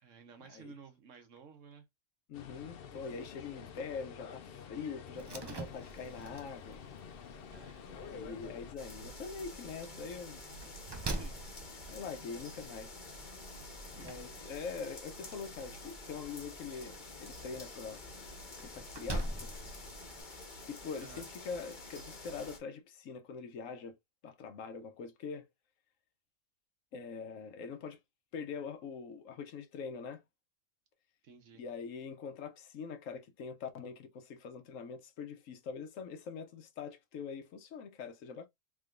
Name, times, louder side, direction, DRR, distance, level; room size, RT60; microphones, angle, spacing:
voice 1, 0.0-1.9 7.5-7.8 11.0-11.6 21.0-21.3 31.2-31.6, right 6 dB, 75° right, 1.3 m, -54 dB
voice 2, 2.3-6.8 7.9-10.4 11.9-13.0 14.0-18.0 18.6-19.5 20.7-24.0 24.2-25.5 26.9-28.0 28.3-30.2 31.6-38.5, left 5 dB, 85° left, 1.2 m, -43 dB
sound 1, 2.3-8.8, left 7 dB, 55° left, 0.7 m, -49 dB
Slam, 5.1-20.2, right 2 dB, 40° right, 0.3 m, -46 dB
sound 2, 8.8-22.6, left 2 dB, 40° left, 1.1 m, -49 dB
3.7 x 3.5 x 2.4 m
omnidirectional pair, 1.3 m